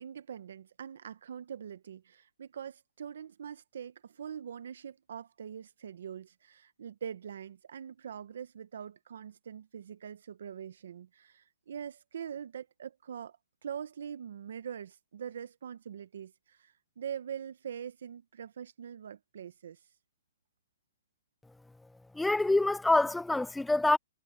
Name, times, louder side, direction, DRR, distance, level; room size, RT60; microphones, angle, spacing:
voice 1, 0.0-19.9, right 8 dB, 65° right, 0.7 m, -43 dB
voice 2, 22.1-24.0, left 2 dB, 5° left, 0.4 m, -26 dB
hypercardioid pair, 165°, 0 cm